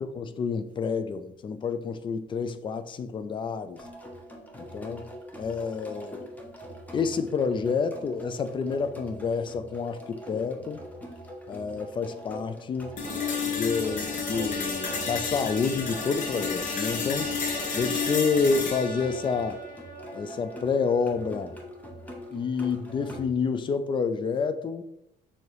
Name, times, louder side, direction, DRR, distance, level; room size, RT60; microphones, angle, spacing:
voice 1, 0.0-3.8 4.6-5.1 5.4-6.3 6.9-10.8 11.5-13.0 13.5-17.4 17.7-19.6 20.1-21.6 22.3-24.8, left 5 dB, 30° left, 0.4 m, -29 dB
sound 1, 3.7-23.3, equal, 10° left, 0.8 m, -43 dB
sound 2, 13.0-21.0, left 5 dB, 50° left, 0.9 m, -31 dB
6.3 x 2.7 x 3.0 m
cardioid pair, 110°, 17 cm